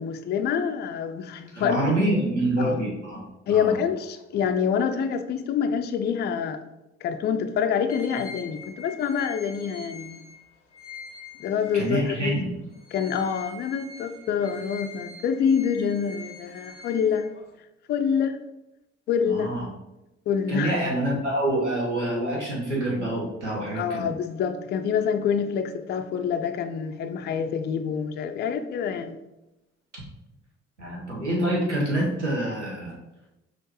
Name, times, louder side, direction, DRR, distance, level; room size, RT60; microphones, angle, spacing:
voice 1, 0.0-1.8 2.6-2.8 3.5-6.6 7.0-10.2 11.4-12.4 12.9-17.3 17.9-18.4 19.1-19.5 20.3-20.7 23.8-29.2, left 7 dB, 30° left, 8 dB, 0.4 m, -26 dB
voice 2, 1.5-3.2 3.5-3.8 11.7-12.5 19.2-19.7 20.5-24.1 30.8-32.9, right 1 dB, 85° right, -4 dB, 0.9 m, -26 dB
sound 1, 7.9-12.3 12.7-17.6, left 4 dB, 90° left, 0.6 m, -44 dB
6.2 x 2.4 x 2.9 m, 0.95 s
figure-of-eight pair, 50°, 35 cm